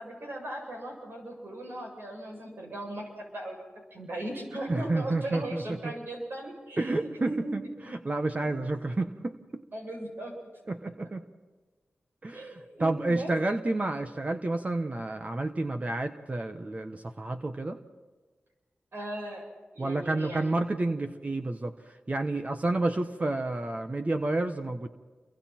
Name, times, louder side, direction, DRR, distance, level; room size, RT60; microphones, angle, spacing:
voice 1, 0.0-3.6 3.9-7.5 7.8-7.9 8.4-8.7 9.7-10.7 12.3-13.4 18.9-19.5 19.7-20.6, right 1 dB, 70° right, 0 dB, 7.7 m, -38 dB
voice 2, 4.7-5.9 6.8-9.6 10.7-11.2 12.2-17.8 19.8-24.9, right 2 dB, 40° right, 6 dB, 1.2 m, -30 dB
29.0 x 23.5 x 4.5 m, 1.3 s
cardioid pair, 55°, 4 cm